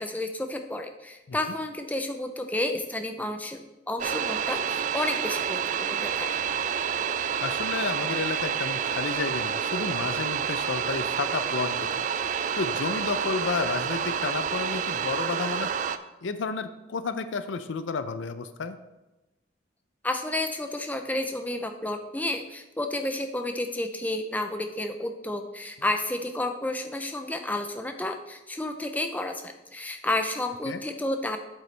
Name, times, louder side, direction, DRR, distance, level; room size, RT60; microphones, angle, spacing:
voice 1, 0.0-6.4 20.0-31.4, left 1 dB, 10° left, 6 dB, 0.5 m, -31 dB
sound 1, 4.0-16.0, right 7 dB, 40° right, 0.3 m, -29 dB
voice 2, 7.4-11.9 12.6-15.7 16.2-18.8 30.7-30.8, left 4 dB, 85° left, 11 dB, 0.5 m, -31 dB
8.1 x 8.0 x 3.3 m, 1.0 s
head